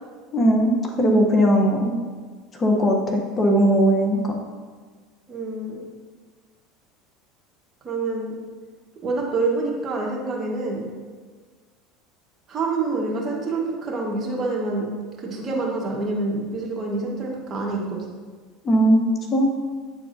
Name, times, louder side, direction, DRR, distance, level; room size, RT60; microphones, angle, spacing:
voice 1, 0.3-1.9 2.5-4.4 18.6-19.5, equal, 30° left, 2 dB, 0.8 m, -19 dB
voice 2, 5.3-5.8 7.8-8.4 9.0-10.8 12.5-14.9 15.3-18.0, right 3 dB, 35° right, -2 dB, 1.4 m, -26 dB
8.8 x 4.6 x 2.7 m, 1.5 s
supercardioid pair, 100°, 0 cm